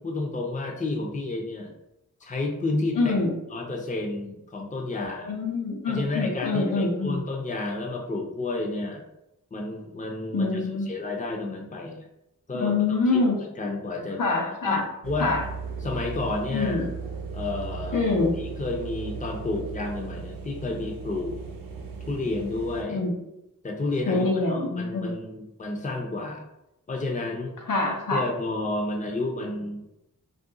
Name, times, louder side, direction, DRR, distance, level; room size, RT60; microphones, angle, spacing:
voice 1, 0.0-1.7 2.2-3.2 3.5-5.4 5.9-9.0 9.5-12.0 12.5-14.2 14.6-15.4 15.8-16.9 17.3-18.0 18.4-21.4 22.1-23.0 23.6-26.4 26.9-27.5 28.1-29.8, left 2 dB, 25° left, 1 dB, 0.6 m, -31 dB
voice 2, 2.9-3.3 5.0-7.2 10.3-10.9 12.5-13.4 14.2-14.8 15.2-15.4 16.5-16.9 17.9-18.5 22.9-23.1 24.1-25.2 27.7-28.2, left 3 dB, 70° left, 0 dB, 0.7 m, -25 dB
sound 1, 15.0-22.8, right 5 dB, 85° right, 0.6 m, -37 dB
2.5 x 2.3 x 3.7 m, 0.86 s
cardioid pair, 55°, 33 cm